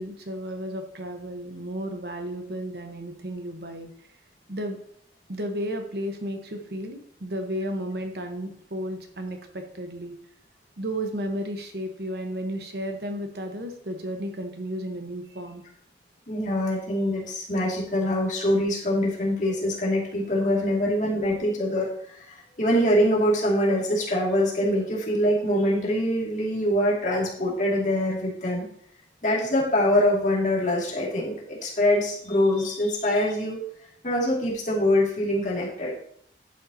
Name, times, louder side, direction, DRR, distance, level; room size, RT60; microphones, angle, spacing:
voice 1, 0.0-3.9 4.5-4.8 5.3-10.2 10.8-15.6, equal, 60° right, 4 dB, 1.1 m, -33 dB
voice 2, 16.3-28.7 29.2-33.6 34.0-35.9, left 1 dB, 45° left, -4 dB, 2.3 m, -24 dB
11.0 x 6.6 x 2.8 m, 0.64 s
head